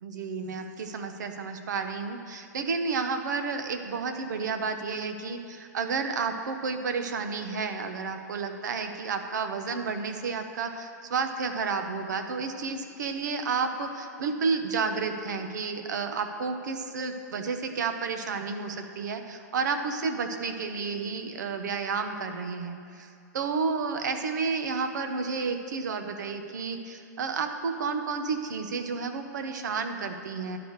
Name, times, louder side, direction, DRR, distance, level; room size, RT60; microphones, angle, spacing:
voice 1, 0.0-30.6, right 5 dB, 75° right, 7 dB, 0.8 m, -31 dB
11.0 x 4.9 x 6.5 m, 2.5 s
hypercardioid pair, 170°, 10 cm